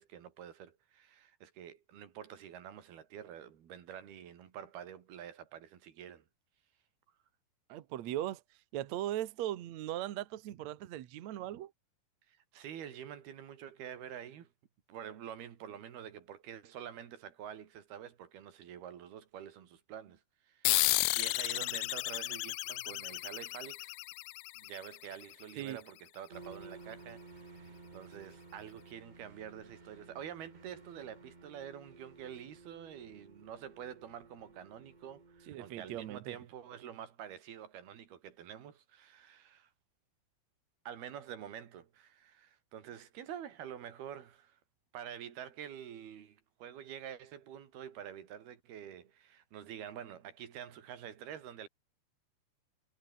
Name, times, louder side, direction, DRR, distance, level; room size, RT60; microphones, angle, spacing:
voice 1, 0.0-6.3 12.3-14.5 14.9-24.0 24.6-39.7 40.9-44.6 44.9-51.7, right 9 dB, 85° right, 4.4 m, -47 dB
voice 2, 7.7-8.4 8.7-11.7 25.6-25.8 35.5-36.4, right 13 dB, 60° right, 2.0 m, -38 dB
sound 1, 20.6-25.6, left 23 dB, 80° left, 2.2 m, -33 dB
sound 2, 26.3-36.2, right 3 dB, 45° right, 0.6 m, -55 dB
omnidirectional pair, 4.3 m